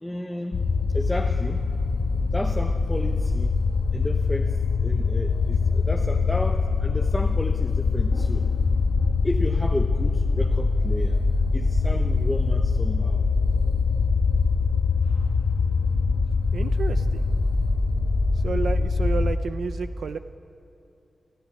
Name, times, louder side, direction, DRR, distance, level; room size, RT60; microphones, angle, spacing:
voice 1, 0.0-0.6 0.9-1.6 2.3-3.5 3.9-4.5 4.8-8.5 9.2-11.2 11.5-13.2, left 1 dB, 10° left, 3 dB, 0.8 m, -32 dB
sound 1, 0.5-19.4, left 4 dB, 85° left, 1.7 m, -23 dB
voice 2, 16.5-17.2 18.4-20.2, right 5 dB, 90° right, 10 dB, 0.6 m, -31 dB
30.0 x 13.5 x 9.9 m, 2.6 s
wide cardioid pair, 155°, 0 cm